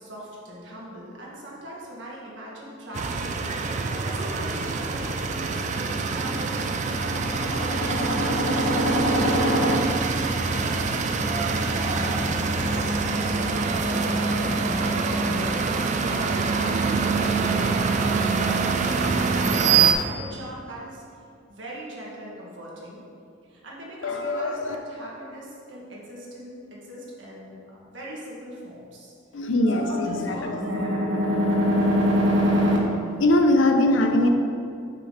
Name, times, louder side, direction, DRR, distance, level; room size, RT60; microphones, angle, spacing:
voice 1, 0.0-3.4 3.7-9.7 10.1-11.2 11.8-15.5 16.0-21.0 21.5-23.0 23.5-29.1 29.7-32.8, equal, 70° right, -4 dB, 1.4 m, -30 dB
sound 1, 2.9-19.9, right 4 dB, 40° right, 0.4 m, -25 dB
voice 2, 24.0-24.8 29.3-30.7 33.2-34.3, left 1 dB, 80° left, 5 dB, 0.6 m, -22 dB
5.5 x 4.0 x 5.4 m, 2.4 s
head